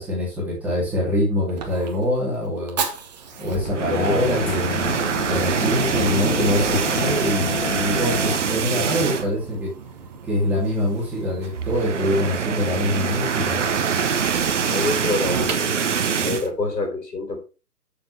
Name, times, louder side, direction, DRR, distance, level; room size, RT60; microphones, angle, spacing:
voice 1, 0.0-2.8 3.4-4.8 5.3-9.7 10.3-13.6, left 1 dB, 5° right, -7 dB, 3.0 m, -24 dB
Fire, 0.7-16.9, right 5 dB, 25° right, 1.1 m, -37 dB
sound 1, 3.3-8.4, left 6 dB, 35° left, 1.5 m, -29 dB
sound 2, 3.7-9.5 9.8-10.0 10.3-10.4 11.4-16.5, right 7 dB, 50° right, 0.9 m, -24 dB
voice 2, 3.9-4.4 14.7-15.8 16.2-17.4, left 3 dB, 80° left, 3 dB, 4.3 m, -26 dB
9.3 x 6.9 x 3.4 m, 0.32 s
figure-of-eight pair, 140°, 48 cm